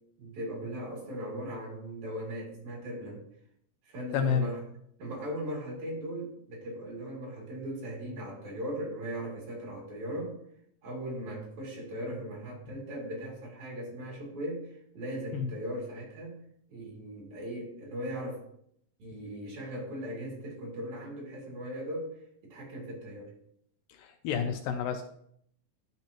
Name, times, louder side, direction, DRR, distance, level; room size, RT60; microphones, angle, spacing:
voice 1, 0.2-3.2 3.8-4.6 5.0-10.4 10.8-16.3 16.7-18.4 19.0-22.1 22.4-23.3, equal, 55° right, -3 dB, 3.8 m, -38 dB
voice 2, 4.1-4.5 15.3-15.5 23.9-25.0, left 7 dB, 80° left, 6 dB, 2.2 m, -29 dB
12.5 x 5.8 x 3.0 m, 0.68 s
omnidirectional pair, 4.2 m